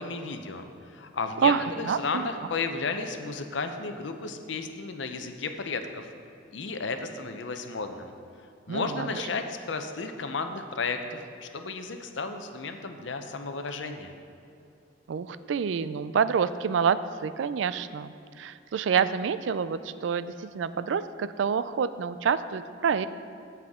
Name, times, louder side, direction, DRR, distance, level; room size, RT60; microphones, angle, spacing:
voice 1, 0.0-6.1 6.5-8.1 8.7-14.1, left 4 dB, 75° left, 7 dB, 0.7 m, -33 dB
voice 2, 1.4-2.3 8.7-9.1 15.1-23.1, right 6 dB, 75° right, 14 dB, 0.4 m, -27 dB
15.5 x 5.8 x 3.6 m, 2.6 s
head